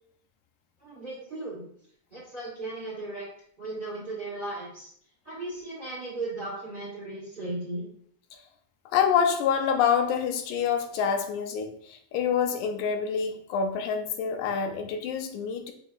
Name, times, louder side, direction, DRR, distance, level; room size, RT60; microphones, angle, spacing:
voice 1, 0.8-1.6 2.1-3.3 3.6-4.9 5.2-7.8, right 2 dB, 30° right, -8 dB, 0.9 m, -36 dB
voice 2, 8.9-15.7, left 7 dB, 85° left, 5 dB, 2.0 m, -26 dB
6.5 x 2.8 x 2.3 m, 0.64 s
omnidirectional pair, 3.5 m